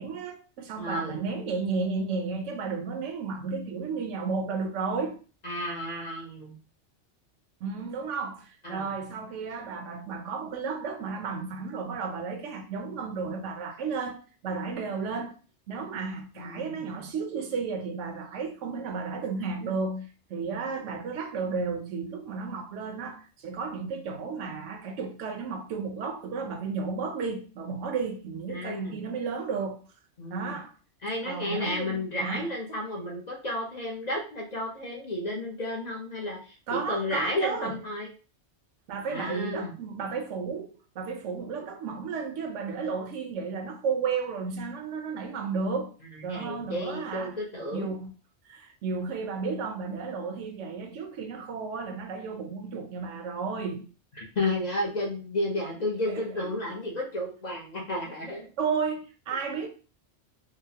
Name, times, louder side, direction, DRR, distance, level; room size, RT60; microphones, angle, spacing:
voice 1, 0.0-5.2 7.6-14.2 14.4-15.4 15.7-29.8 30.3-30.7 31.3-32.5 36.7-37.8 38.9-45.9 46.2-47.4 47.7-48.1 48.5-53.8 56.1-56.2 58.6-59.7, right 5 dB, 85° right, 1.0 m, -33 dB
voice 2, 0.8-1.2 5.4-6.6 8.6-8.9 16.3-16.9 28.5-29.0 30.2-30.6 31.0-38.1 39.1-39.7 46.3-47.9 54.2-58.5, left 1 dB, 45° left, 0.7 m, -32 dB
3.9 x 2.0 x 2.7 m
omnidirectional pair, 1.2 m